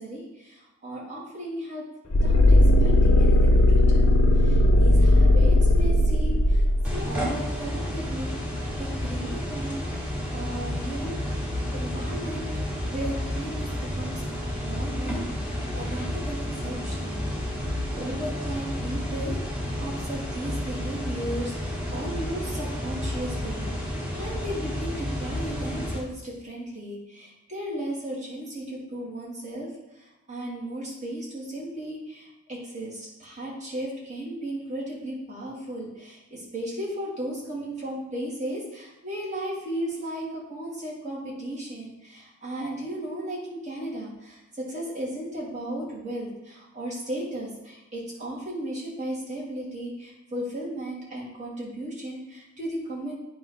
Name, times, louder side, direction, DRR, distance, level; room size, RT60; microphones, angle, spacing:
voice 1, 0.0-1.8 2.2-4.2 4.4-6.6 6.9-8.3 8.8-10.1 10.3-12.5 12.9-13.7 14.0-14.1 14.6-17.3 17.9-19.4 19.8-29.7 30.3-53.1, right 1 dB, 35° right, -5 dB, 2.4 m, -35 dB
sound 1, 2.1-7.0, left 1 dB, 75° left, 0.8 m, -18 dB
sound 2, 6.9-26.0, left 1 dB, 5° right, 1.4 m, -31 dB
9.0 x 3.1 x 5.6 m, 0.96 s
head